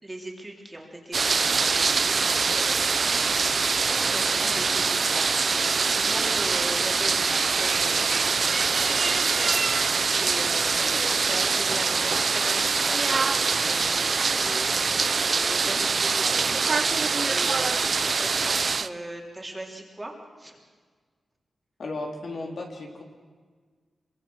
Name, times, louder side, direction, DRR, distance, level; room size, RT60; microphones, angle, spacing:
voice 1, 0.0-20.6, right 1 dB, 15° right, 0 dB, 3.4 m, -40 dB
sound 1, 1.1-18.9, right 4 dB, 50° right, 0.7 m, -24 dB
voice 2, 21.8-23.0, left 2 dB, 60° left, 1 dB, 3.9 m, -34 dB
25.5 x 23.5 x 6.4 m, 1.5 s
wide cardioid pair, 130°, 0 cm